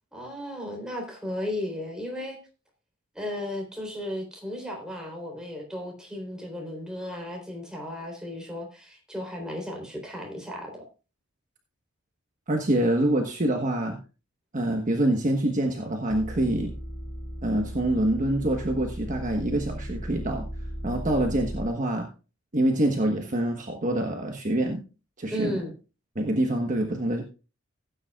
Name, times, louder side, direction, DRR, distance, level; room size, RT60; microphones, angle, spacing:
voice 1, 0.1-2.4 3.1-10.8 25.3-25.7, left 1 dB, 5° right, 3.8 m, -35 dB
voice 2, 12.5-14.0 14.5-16.7 17.4-20.5 20.8-22.1 22.5-24.8 25.2-25.6 26.1-27.2, right 1 dB, 40° right, 1.3 m, -25 dB
sound 1, 16.1-21.7, equal, 25° left, 5.1 m, -36 dB
17.0 x 9.0 x 2.4 m
head